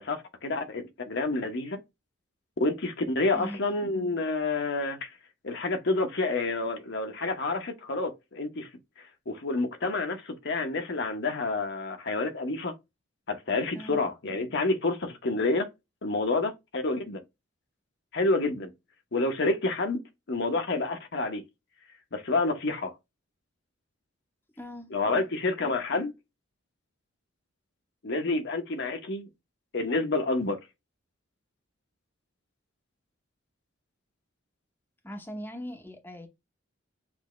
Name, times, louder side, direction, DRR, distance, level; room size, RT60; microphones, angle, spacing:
voice 1, 0.0-1.8 2.6-5.1 5.4-8.7 9.3-12.7 13.3-15.7 16.0-17.2 18.1-18.7 19.1-20.0 20.3-21.4 22.1-22.9 24.9-26.1 28.0-29.3 29.7-30.6, left 2 dB, 55° left, 0.9 m, -28 dB
voice 2, 3.3-3.8 13.7-14.0 24.6-25.2 35.0-36.3, equal, 10° left, 0.7 m, -40 dB
6.1 x 2.7 x 3.1 m
head